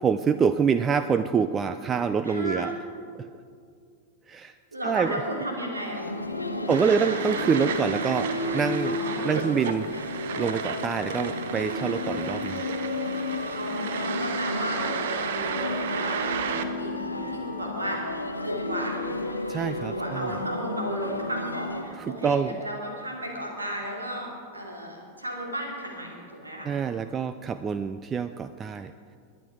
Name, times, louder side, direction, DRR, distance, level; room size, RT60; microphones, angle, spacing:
voice 1, 0.0-2.7 3.2-3.3 4.3-4.5 4.8-5.2 6.7-9.0 9.2-9.9 10.4-12.6 19.5-20.3 21.9-22.6 26.6-28.9, right 6 dB, 20° right, 11 dB, 0.4 m, -26 dB
voice 2, 2.2-2.7 4.7-7.1 8.3-8.5 8.8-9.6 13.5-18.1 18.4-19.1 19.8-26.8, equal, 80° right, -1 dB, 3.1 m, -34 dB
sound 1, 5.9-21.8, left 2 dB, 85° left, 1.0 m, -32 dB
sound 2, 6.7-16.6, right 7 dB, 55° right, 0.9 m, -34 dB
21.0 x 9.9 x 4.8 m, 2.3 s
figure-of-eight pair, 90°, 0 cm